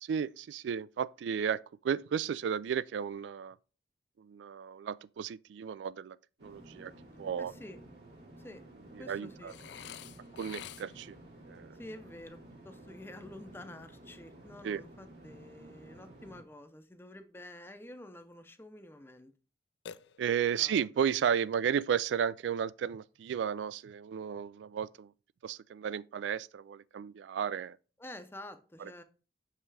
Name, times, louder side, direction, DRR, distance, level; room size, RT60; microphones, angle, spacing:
voice 1, 0.0-3.6 4.2-6.2 6.4-6.9 7.2-7.5 9.1-9.5 10.4-11.2 11.5-11.8 14.6-14.8 20.2-25.1 25.4-27.8 28.8-28.9, right 8 dB, 85° right, 0.3 m, -33 dB
sound 1, 6.4-16.4, right 1 dB, 70° right, 2.5 m, -53 dB
voice 2, 7.4-7.8 8.4-8.6 9.0-9.5 11.7-12.4 12.6-19.3 20.6-21.3 28.0-29.0, left 1 dB, 15° left, 0.5 m, -49 dB
Burping eructation, 9.5-11.2 19.9-20.6, left 9 dB, 80° left, 0.4 m, -48 dB
6.1 x 5.6 x 3.3 m
head